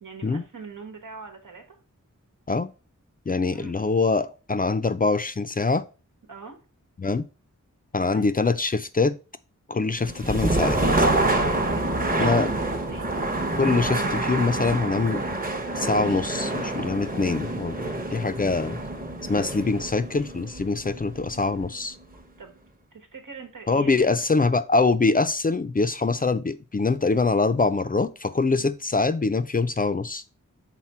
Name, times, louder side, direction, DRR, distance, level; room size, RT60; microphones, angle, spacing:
voice 1, 0.0-1.6 3.5-3.8 6.3-6.6 8.0-8.3 11.5-13.1 22.4-22.6 22.9-24.1 28.6-28.7, right 5 dB, 85° right, 1.4 m, -42 dB
voice 2, 3.3-5.9 7.0-7.2 7.9-9.2 9.7-11.1 12.2-12.5 13.6-15.2 15.8-18.8 19.2-22.0 23.7-30.2, left 3 dB, 30° left, 0.4 m, -24 dB
sound 1, 10.0-21.9, right 2 dB, 30° right, 0.8 m, -27 dB
5.8 x 4.2 x 4.3 m
wide cardioid pair, 80°, 31 cm